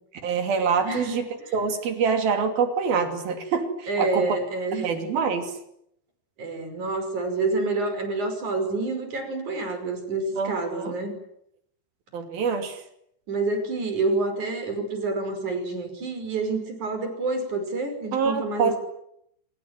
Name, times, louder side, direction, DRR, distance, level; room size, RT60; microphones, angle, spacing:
voice 1, 0.2-4.4 4.8-5.5 10.4-11.0 12.1-12.8 18.1-18.8, right 5 dB, 70° right, 7 dB, 4.6 m, -25 dB
voice 2, 0.8-1.2 3.9-5.2 6.4-11.2 13.3-18.8, right 3 dB, 50° right, 7 dB, 6.9 m, -28 dB
26.0 x 22.5 x 9.3 m, 0.73 s
omnidirectional pair, 4.5 m